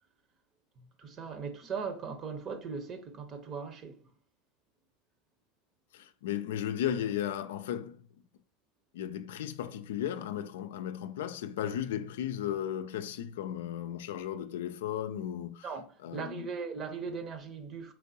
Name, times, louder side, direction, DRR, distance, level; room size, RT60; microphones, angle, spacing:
voice 1, 1.0-4.0 15.6-17.9, right 5 dB, 40° right, 0.8 m, -39 dB
voice 2, 5.9-8.0 8.9-15.7 16.0-16.5, left 10 dB, 80° left, 0.4 m, -35 dB
4.5 x 3.6 x 2.7 m
hypercardioid pair, 95°, 0 cm